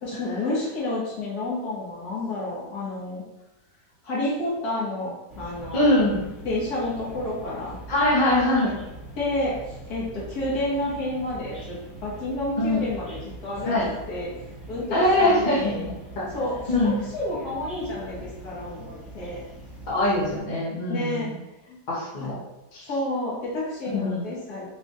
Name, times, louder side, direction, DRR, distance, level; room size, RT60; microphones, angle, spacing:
voice 1, 0.0-3.2 4.0-6.0 6.4-7.8 9.2-13.8 14.1-14.3 14.7-15.8 16.3-16.5 16.8-19.4 20.9-21.3 21.7-21.8 22.2-22.3 22.9-24.7, left 1 dB, 65° left, -6 dB, 1.6 m, -30 dB
sound 1, 5.3-20.4, right 1 dB, 40° right, 0.9 m, -42 dB
voice 2, 5.7-6.3 7.9-8.7 12.6-12.8 13.6-13.9 14.9-16.3 16.7-17.0 19.9-21.3 21.9-22.4 22.7-22.9 23.9-24.3, left 1 dB, 35° left, -6 dB, 0.8 m, -23 dB
3.7 x 2.4 x 3.9 m, 0.97 s
omnidirectional pair, 1.8 m